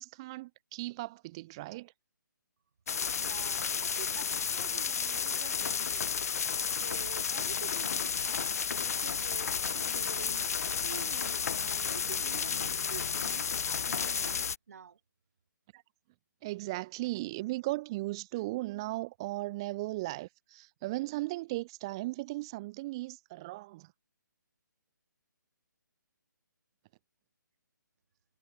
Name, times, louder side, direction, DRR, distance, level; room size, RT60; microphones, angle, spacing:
voice 1, 0.0-1.9 15.7-15.8 16.4-23.9, right 20 dB, 15° right, 0.5 m, -37 dB
sound 1, 2.9-14.6, left 7 dB, 50° left, 0.8 m, -32 dB
voice 2, 3.2-6.2 6.7-15.0, right 7 dB, 50° right, 2.6 m, -49 dB
hypercardioid pair, 170°, 11 cm